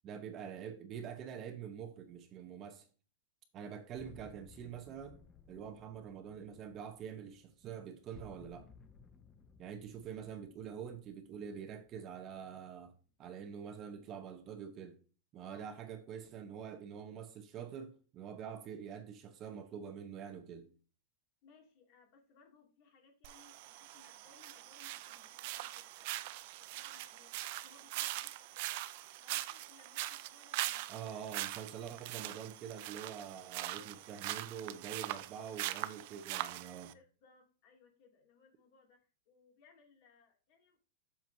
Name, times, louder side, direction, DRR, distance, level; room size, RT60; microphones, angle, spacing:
voice 1, 0.0-2.9 3.5-5.2 5.5-8.7 9.6-12.9 13.2-15.0 15.3-20.7 30.9-36.9, right 8 dB, 25° right, 0.8 m, -46 dB
sound 1, 3.9-12.9, left 5 dB, 15° left, 0.5 m, -60 dB
voice 2, 21.4-28.8 29.2-31.5 33.7-34.0 36.9-39.0 39.3-40.8, left 4 dB, 45° left, 2.4 m, -65 dB
sound 2, 23.2-36.9, right 16 dB, 45° right, 0.5 m, -42 dB
7.5 x 7.2 x 2.7 m
supercardioid pair, 165°, 0 cm